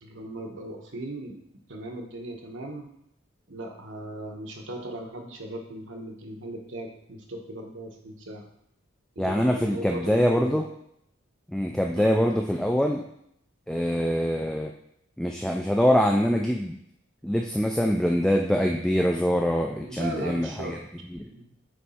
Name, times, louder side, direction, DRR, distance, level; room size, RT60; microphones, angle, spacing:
voice 1, 0.0-1.4 1.7-2.9 3.5-8.4 9.1-10.6 11.9-12.2 19.8-20.8 21.3-21.5, right 1 dB, 85° right, 1 dB, 1.1 m, -38 dB
voice 2, 9.2-10.7 11.5-13.0 13.7-14.7 15.2-16.8 17.2-20.8 21.1-21.3, equal, 5° left, 1 dB, 0.3 m, -24 dB
7.8 x 3.1 x 4.3 m, 0.74 s
head